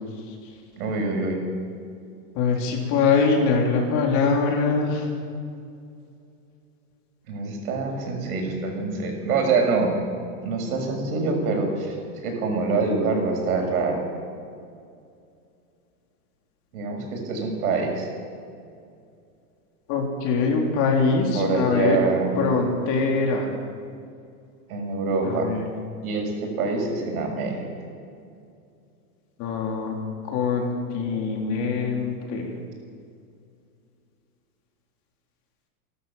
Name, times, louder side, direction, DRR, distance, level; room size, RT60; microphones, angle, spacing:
voice 1, 0.8-1.4 7.3-9.9 10.4-12.0 12.2-14.0 16.7-18.1 21.3-22.4 24.7-25.5 26.0-27.6, right 4 dB, 70° right, 2 dB, 6.6 m, -25 dB
voice 2, 2.3-5.1 19.9-22.0 22.4-23.5 25.2-25.6 29.4-30.0 30.3-32.5, left 4 dB, 40° left, 1 dB, 3.9 m, -23 dB
28.5 x 12.5 x 7.3 m, 2.4 s
supercardioid pair, 160°, 45 cm